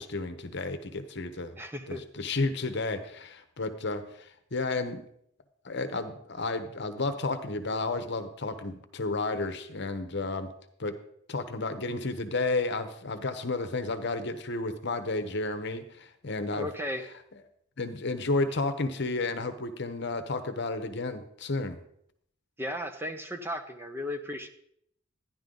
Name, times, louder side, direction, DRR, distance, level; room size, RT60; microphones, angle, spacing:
voice 1, 0.0-1.6 1.9-5.0 5.6-10.5 10.8-11.0 11.3-16.7 17.8-21.8, left 3 dB, 60° left, 8 dB, 1.0 m, -32 dB
voice 2, 1.6-2.0 16.5-17.1 22.6-24.5, left 1 dB, 10° right, 7 dB, 0.8 m, -35 dB
12.5 x 10.5 x 3.9 m, 0.70 s
head